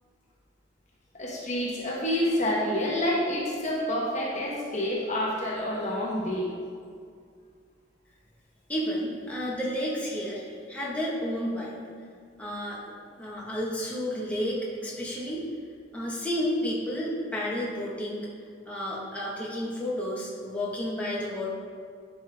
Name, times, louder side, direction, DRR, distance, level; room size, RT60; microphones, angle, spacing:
voice 1, 1.1-6.5, left 1 dB, 40° left, -3 dB, 1.2 m, -28 dB
voice 2, 8.7-11.8 12.4-15.5 15.9-18.3 18.6-21.5, equal, 5° left, -6 dB, 1.4 m, -31 dB
11.0 x 5.4 x 3.5 m, 2.1 s
head